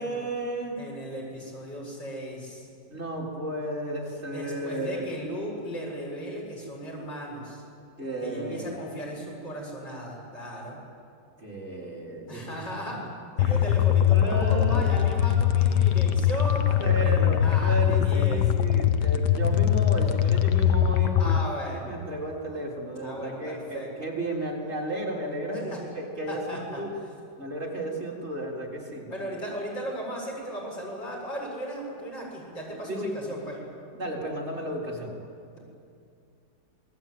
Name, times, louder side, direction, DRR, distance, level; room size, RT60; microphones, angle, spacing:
voice 1, 0.0-0.9 2.9-5.1 8.0-8.9 11.4-12.7 13.4-13.6 14.1-14.9 16.8-21.3 21.9-26.9 27.4-29.3 32.9-33.1 33.9-35.1, right 1 dB, 35° right, -2 dB, 4.3 m, -33 dB
voice 2, 0.8-2.7 4.3-7.6 8.2-10.8 12.3-13.0 13.4-18.4 21.2-21.9 23.0-23.9 25.5-25.8 26.3-26.8 29.1-33.6, equal, 85° left, -3 dB, 7.8 m, -36 dB
sound 1, 13.4-21.4, left 10 dB, 70° left, 1.4 m, -22 dB
28.0 x 20.5 x 9.3 m, 2.4 s
omnidirectional pair, 1.9 m